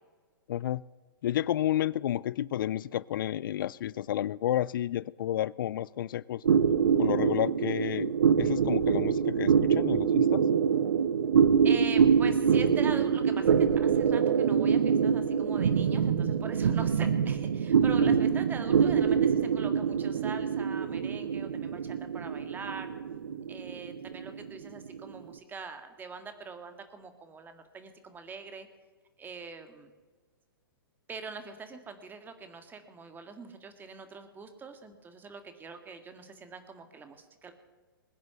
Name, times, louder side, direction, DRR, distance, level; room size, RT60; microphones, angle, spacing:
voice 1, 0.5-0.8 1.2-6.4 7.0-8.1 8.4-10.4, left 12 dB, 65° left, 22 dB, 0.4 m, -31 dB
sound 1, 6.4-25.2, right 7 dB, 75° right, 0.9 m, -25 dB
voice 2, 11.6-22.9 23.5-28.7 29.2-29.9 31.1-37.5, right 4 dB, 15° right, 8 dB, 1.9 m, -43 dB
21.0 x 9.4 x 6.8 m, 1.4 s
hypercardioid pair, 120°, 12 cm